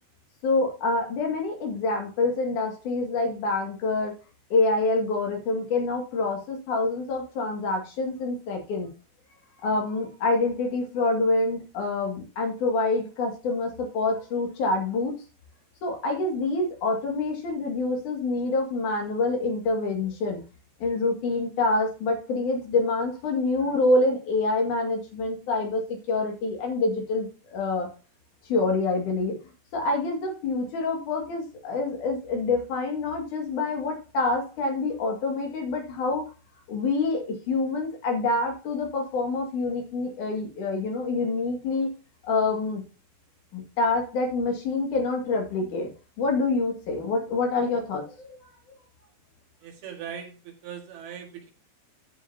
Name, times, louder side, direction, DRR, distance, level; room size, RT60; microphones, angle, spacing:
voice 1, 0.4-4.1 4.5-8.9 9.6-15.1 15.8-20.4 20.8-27.9 28.5-29.4 29.7-36.2 36.7-41.9 42.2-42.8 43.5-45.9 46.2-48.4, left 3 dB, 50° left, 1 dB, 3.2 m, -26 dB
voice 2, 49.6-51.5, right 8 dB, 65° right, 2 dB, 3.5 m, -40 dB
12.5 x 6.9 x 2.8 m, 0.33 s
omnidirectional pair, 5.2 m